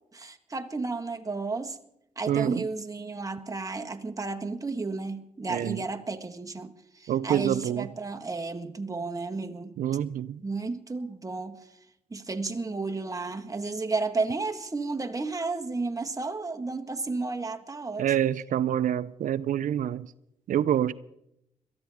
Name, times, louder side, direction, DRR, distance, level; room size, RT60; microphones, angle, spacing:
voice 1, 0.1-1.8 2.2-9.7 10.4-11.6 12.1-18.0, right 3 dB, 25° right, 1.6 m, -32 dB
voice 2, 2.3-2.6 5.5-5.8 7.1-7.9 9.8-10.4 18.0-20.1 20.5-20.9, right 10 dB, 70° right, 0.5 m, -26 dB
22.0 x 14.0 x 3.6 m
supercardioid pair, 55°, 14 cm